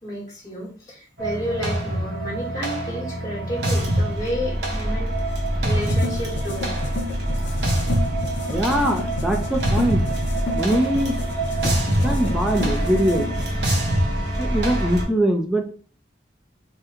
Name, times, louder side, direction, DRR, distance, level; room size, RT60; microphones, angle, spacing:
voice 1, 0.0-6.7, equal, 20° left, -7 dB, 1.2 m, -31 dB
sound 1, 1.2-15.0, right 1 dB, 65° right, 0.8 m, -24 dB
sound 2, 5.7-13.5, left 3 dB, 75° left, 0.6 m, -33 dB
voice 2, 8.4-10.0 10.5-11.1 12.0-13.3 14.4-15.8, right 1 dB, 5° right, 3 dB, 0.4 m, -22 dB
3.0 x 2.2 x 3.5 m, 0.40 s
head